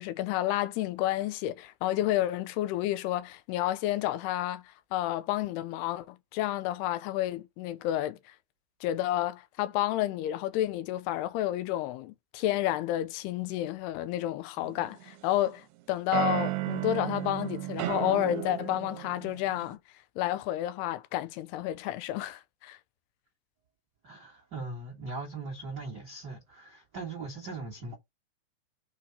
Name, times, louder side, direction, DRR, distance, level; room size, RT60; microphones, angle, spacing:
voice 1, 0.0-4.6 4.9-8.3 8.8-19.8 20.2-22.8, left 14 dB, 85° left, 2.5 m, -30 dB
sound 1, 14.6-15.5 16.1-19.8, right 16 dB, 85° right, 2.7 m, -33 dB
voice 2, 24.0-27.9, right 3 dB, 65° right, 1.0 m, -40 dB
5.4 x 4.7 x 4.0 m
omnidirectional pair, 4.8 m